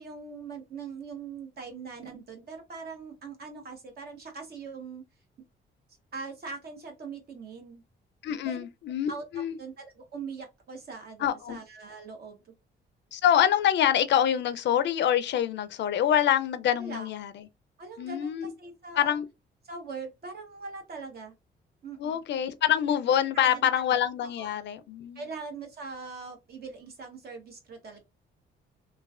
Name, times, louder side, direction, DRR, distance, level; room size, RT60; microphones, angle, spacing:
voice 1, 0.0-5.0 6.1-7.8 8.4-8.6 9.1-12.5 16.8-17.1 17.8-19.2 19.6-21.3 21.8-22.2 23.3-24.5 25.1-28.0, right 4 dB, 50° right, 1.1 m, -41 dB
voice 2, 8.2-9.6 11.2-11.6 13.1-17.3 18.0-18.5 19.0-19.3 22.0-25.2, left 10 dB, 65° left, 0.4 m, -25 dB
3.1 x 2.2 x 2.4 m
cardioid pair, 90°, 20 cm